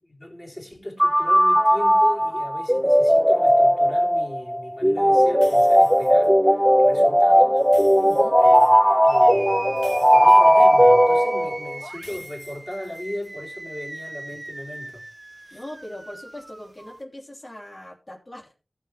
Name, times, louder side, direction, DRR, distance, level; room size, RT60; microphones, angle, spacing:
voice 1, 0.0-7.6 8.4-15.0 15.4-15.6, left 1 dB, 20° left, 3.4 m, -37 dB
sound 1, 1.0-11.7, equal, ahead, 0.5 m, -17 dB
sound 2, 5.4-6.3 7.6-8.8 9.8-11.1 12.0-13.3, left 2 dB, 75° left, 2.3 m, -49 dB
voice 2, 8.0-8.4 15.5-18.6, left 1 dB, 40° left, 3.3 m, -40 dB
sound 3, 9.0-17.0, right 1 dB, 30° right, 0.8 m, -39 dB
15.0 x 7.2 x 3.4 m
wide cardioid pair, 45°, 0 cm